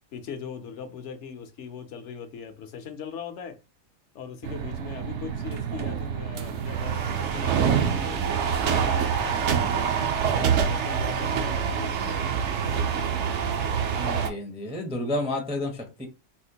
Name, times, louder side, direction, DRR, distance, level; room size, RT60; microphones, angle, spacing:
voice 1, 0.1-3.6 4.1-8.3 8.6-10.3 10.6-12.3 12.6-13.0, left 6 dB, 65° left, 0.9 m, -40 dB
sound 1, 4.4-14.3, right 7 dB, 65° right, 0.8 m, -26 dB
voice 2, 13.9-16.1, left 1 dB, 10° right, 0.4 m, -31 dB
4.2 x 2.1 x 2.7 m
omnidirectional pair, 1.5 m